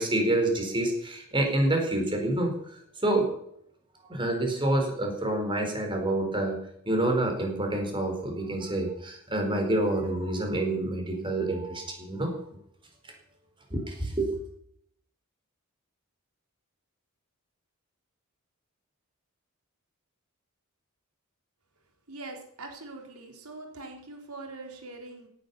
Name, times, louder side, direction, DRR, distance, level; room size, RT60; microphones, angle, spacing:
voice 1, 0.0-2.5 3.0-3.3 4.1-6.6 6.9-12.3 13.7-14.4, right 1 dB, 25° right, 3 dB, 4.5 m, -27 dB
voice 2, 22.1-25.3, right 2 dB, 90° right, 2 dB, 4.0 m, -42 dB
17.0 x 10.0 x 7.0 m, 0.70 s
head